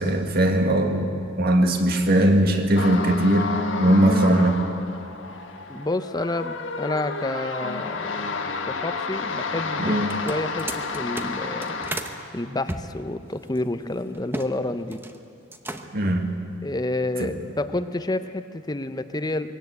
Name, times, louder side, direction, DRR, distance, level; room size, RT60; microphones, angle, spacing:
voice 1, 0.0-3.5 3.8-4.6 9.8-10.1 15.9-16.4 17.2-17.4, right 1 dB, 50° right, 4 dB, 1.9 m, -20 dB
sound 1, 2.8-12.4, left 3 dB, 80° left, 1.5 m, -30 dB
voice 2, 5.7-11.8 12.3-15.0 16.6-19.5, left 2 dB, 20° left, 10 dB, 0.7 m, -29 dB
sound 2, 10.0-12.2 12.7-14.5 14.8-15.2 15.5-16.1, right 1 dB, 10° right, 1.0 m, -35 dB
22.0 x 17.5 x 8.2 m, 2.5 s
head